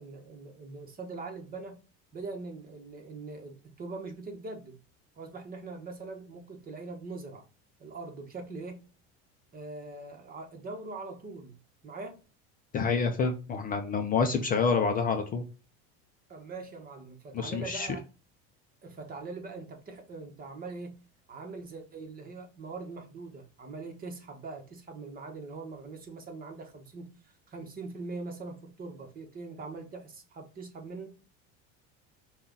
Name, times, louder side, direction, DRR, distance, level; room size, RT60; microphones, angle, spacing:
voice 1, 0.0-1.8 2.1-4.8 5.2-7.4 7.8-8.8 9.5-11.6 11.8-12.2 16.3-18.0 18.8-21.0 21.3-31.1, right 3 dB, 25° right, 1.1 m, -42 dB
voice 2, 12.7-15.4 17.3-17.9, left 5 dB, 25° left, 0.5 m, -28 dB
5.4 x 2.4 x 3.9 m
supercardioid pair, 130°, 32 cm